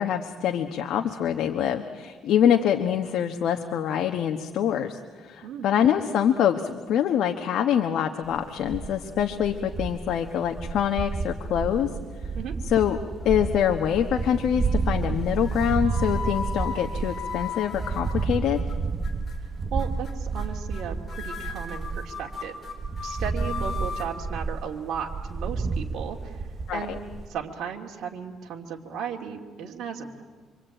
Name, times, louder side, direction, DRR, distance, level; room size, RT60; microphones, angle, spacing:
voice 1, 0.0-5.0 5.2-11.9 12.7-13.0 13.2-18.6 26.7-27.0, left 9 dB, 65° left, 5 dB, 1.3 m, -25 dB
sound 1, 8.2-22.4 22.7-27.3, right 4 dB, 30° right, 1.3 m, -31 dB
sound 2, 13.2-13.8 14.2-14.7 15.4-18.7 19.0-19.4 19.8-20.1 20.4-20.5 20.7-20.8 21.1-24.1, left 5 dB, 25° left, 4.3 m, -37 dB
voice 2, 19.7-22.6 23.0-26.4 26.7-27.0 27.3-30.2, right 7 dB, 65° right, 0 dB, 2.6 m, -35 dB
26.0 x 25.5 x 9.0 m, 1.5 s
cardioid pair, 140°, 0 cm